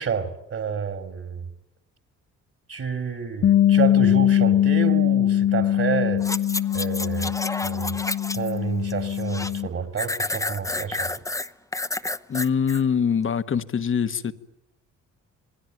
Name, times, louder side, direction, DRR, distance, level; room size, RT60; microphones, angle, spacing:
voice 1, 0.0-1.5 2.7-6.2 6.7-7.4 7.6-8.0 8.3-11.1, right 6 dB, 50° right, 2.9 m, -29 dB
Bass guitar, 3.4-9.7, left 11 dB, 65° left, 1.5 m, -21 dB
sound 1, 6.2-8.6 8.9-9.6 10.0-12.8 13.3-13.4, left 2 dB, 10° left, 0.9 m, -30 dB
voice 2, 12.3-14.3, left 7 dB, 45° left, 1.4 m, -23 dB
27.5 x 20.0 x 9.3 m
cardioid pair, 90°, 30 cm